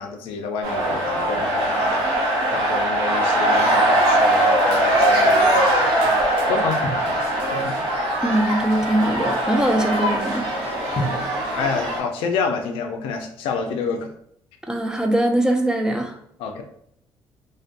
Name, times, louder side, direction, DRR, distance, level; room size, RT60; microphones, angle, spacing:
voice 1, 0.0-2.1 2.5-6.0 6.5-6.9 7.5-7.9 11.0-11.2 11.6-14.1 16.4-16.6, left 5 dB, 85° left, 4 dB, 0.4 m, -28 dB
sound 1, 0.6-12.0, right 1 dB, 85° right, 0.7 m, -21 dB
Drum, 6.8-8.3 11.0-13.1, equal, 45° left, 0.7 m, -34 dB
voice 2, 8.2-10.5 14.7-16.1, right 1 dB, 10° right, 4 dB, 0.4 m, -21 dB
2.5 x 2.2 x 2.5 m, 0.70 s
supercardioid pair, 75°, 9 cm